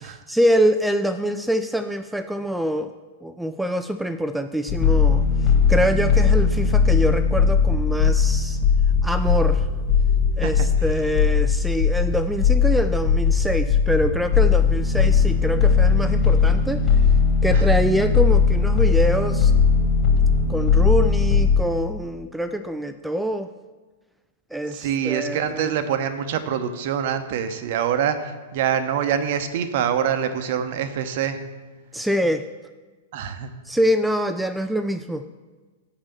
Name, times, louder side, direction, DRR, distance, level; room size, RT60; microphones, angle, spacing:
voice 1, 0.0-2.9 3.2-8.6 9.0-9.7 10.4-16.8 17.4-19.5 20.5-23.5 24.5-25.7 31.9-32.5 33.6-35.3, equal, 5° right, 8 dB, 0.3 m, -25 dB
sound 1, 4.7-21.6, left 5 dB, 20° left, 2.7 m, -19 dB
voice 2, 24.7-31.4 33.1-33.5, right 8 dB, 55° right, 9 dB, 0.8 m, -25 dB
6.7 x 5.6 x 6.9 m, 1.4 s
figure-of-eight pair, 100°, 0 cm